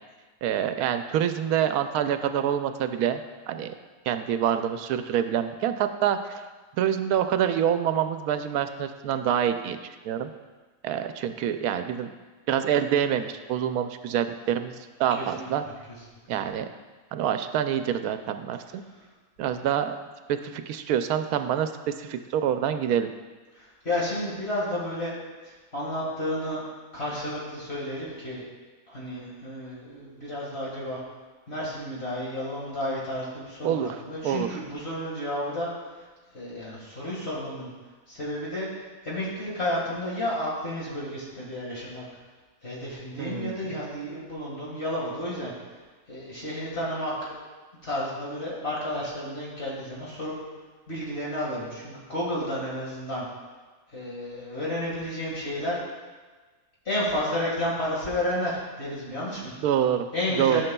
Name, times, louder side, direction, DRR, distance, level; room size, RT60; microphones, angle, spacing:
voice 1, 0.4-3.2 3.5-3.7 4.1-6.4 6.8-10.3 10.8-12.1 12.5-15.6 16.3-16.7 17.1-18.8 19.4-20.0 20.3-23.1 33.6-33.9 34.2-34.6 43.2-43.8 59.6-60.1 60.4-60.6, right 9 dB, 80° right, 9 dB, 1.0 m, -26 dB
voice 2, 15.1-15.5 23.5-25.1 25.4-26.6 26.9-28.4 28.9-31.0 31.5-35.7 36.0-36.1 36.3-37.7 38.1-42.0 42.6-45.5 46.1-47.4 47.8-50.3 50.9-53.2 53.9-55.8 56.9-59.5 60.1-60.6, left 1 dB, 45° left, -6 dB, 2.0 m, -31 dB
13.5 x 6.5 x 2.3 m, 1.3 s
omnidirectional pair, 1.6 m